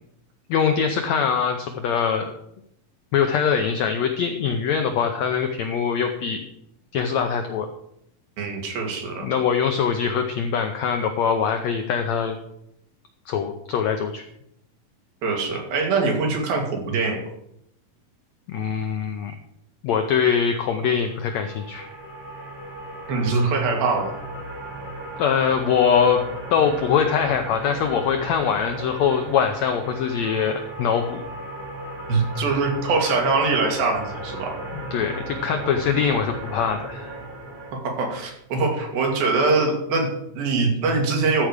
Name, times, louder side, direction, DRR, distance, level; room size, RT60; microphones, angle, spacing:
voice 1, 0.5-2.3 3.1-6.4 6.9-7.7 9.2-12.4 13.3-14.2 18.5-19.3 19.8-21.9 25.2-26.2 26.5-31.2 34.7-37.1, left 7 dB, 90° left, 6 dB, 1.5 m, -23 dB
voice 2, 8.4-9.3 15.2-17.2 23.1-24.1 32.1-34.6 37.7-41.5, right 3 dB, 85° right, 1 dB, 3.9 m, -23 dB
sound 1, 20.9-37.7, right 1 dB, 30° right, 2.5 m, -36 dB
13.5 x 4.8 x 6.6 m, 0.78 s
omnidirectional pair, 4.1 m